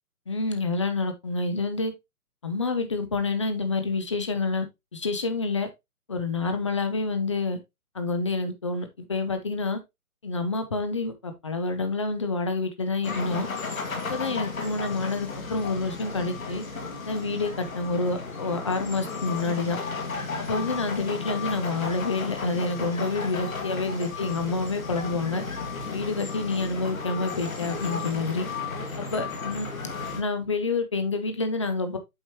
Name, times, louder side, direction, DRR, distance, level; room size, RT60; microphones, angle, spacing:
voice 1, 0.3-1.9 2.4-4.7 4.9-5.7 6.1-7.6 7.9-9.8 10.2-13.5 14.1-16.6 17.0-19.8 20.4-25.4 25.9-28.5 29.0-29.7 30.2-32.0, left 3 dB, 20° left, 0.7 m, -28 dB
sound 1, 13.0-30.2, left 4 dB, 60° left, 2.2 m, -34 dB
8.0 x 5.2 x 2.9 m
figure-of-eight pair, 145°, 45 cm